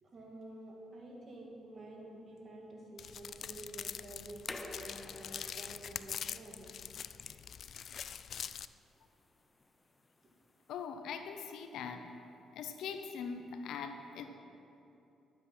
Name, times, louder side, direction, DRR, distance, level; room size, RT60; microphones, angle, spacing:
voice 1, 0.0-6.9, right 2 dB, 45° right, -1 dB, 2.5 m, -50 dB
sound 1, 3.0-8.7, left 8 dB, 60° left, 0.3 m, -44 dB
sound 2, 4.2-10.9, left 2 dB, 20° left, 0.7 m, -52 dB
voice 2, 10.7-12.1 12.5-14.3, left 6 dB, 80° left, 7 dB, 0.8 m, -42 dB
12.0 x 8.2 x 5.8 m, 2.8 s
cardioid pair, 90°, 0 cm